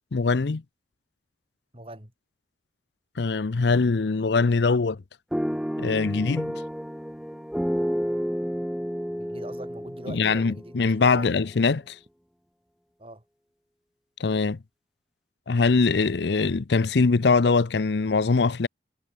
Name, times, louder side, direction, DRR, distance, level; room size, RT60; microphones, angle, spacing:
voice 1, 0.1-0.6 3.2-5.0 5.8-6.6 10.1-12.0 14.2-14.6 15.5-18.7, left 4 dB, 70° left, 0.6 m, -22 dB
voice 2, 1.7-2.1 9.2-10.8 11.1-11.4 13.0-13.2, right 1 dB, 30° right, 4.8 m, -42 dB
sound 1, 5.3-11.3, equal, ahead, 1.2 m, -31 dB
head